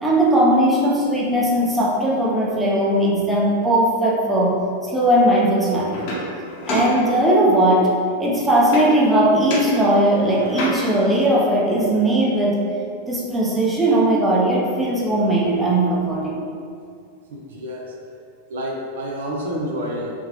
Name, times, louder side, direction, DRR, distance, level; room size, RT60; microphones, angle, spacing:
voice 1, 0.0-4.6 4.9-6.1 6.7-7.9 8.2-12.6 13.1-16.4, right 1 dB, 5° right, -5 dB, 0.6 m, -18 dB
sound 1, 5.9-7.6 8.7-9.2 9.5-11.1 14.4-14.5 14.8-15.8, left 1 dB, 55° left, 0.7 m, -30 dB
voice 2, 17.3-17.9 18.5-20.1, equal, 75° right, -1 dB, 0.5 m, -28 dB
3.6 x 2.1 x 2.9 m, 2.3 s
hypercardioid pair, 105°, 0 cm